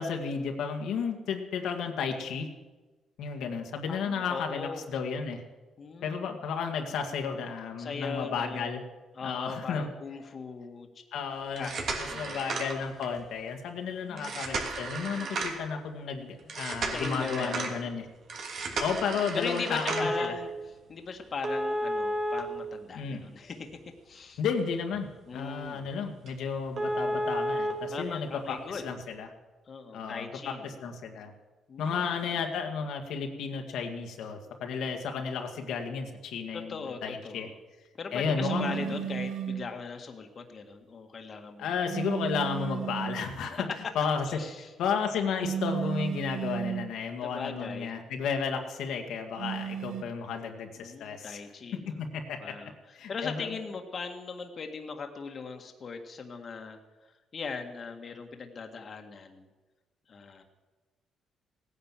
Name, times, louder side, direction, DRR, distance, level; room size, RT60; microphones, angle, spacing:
voice 1, 0.0-2.5 3.2-5.4 6.0-8.8 9.2-9.9 11.1-11.7 12.0-18.1 18.8-20.3 22.9-23.2 24.4-29.3 29.9-31.3 31.8-37.5 38.1-39.0 41.6-43.7 44.0-51.4 51.9-52.6 52.9-53.6, left 6 dB, 80° left, 3 dB, 1.8 m, -33 dB
voice 2, 3.9-4.9 5.8-6.3 7.8-8.7 9.2-10.9 11.6-12.6 13.9-14.4 16.9-17.9 18.7-18.9 19.3-20.5 20.9-23.7 24.1-24.4 25.3-25.9 27.9-28.8 29.7-30.8 31.7-32.1 36.5-37.6 38.0-41.7 43.5-43.8 44.3-44.7 47.2-48.0 50.8-52.0 52.4-59.5 60.1-60.4, left 5 dB, 45° left, 5 dB, 1.7 m, -39 dB
sound 1, 11.4-13.2 14.2-15.7 16.5-17.7 18.3-20.3 21.4-23.3 23.7-23.8 24.4-24.5 24.9-25.1 25.3-25.4 25.8-25.9 26.3-26.4 26.7-27.7 28.8-28.9, right 1 dB, 65° right, 2.9 m, -32 dB
sound 2, 38.4-39.7 41.9-43.3 45.4-46.9 49.4-50.0, right 8 dB, 80° right, 1.1 m, -33 dB
17.0 x 10.0 x 7.5 m, 1.2 s
cardioid pair, 90°, 0 cm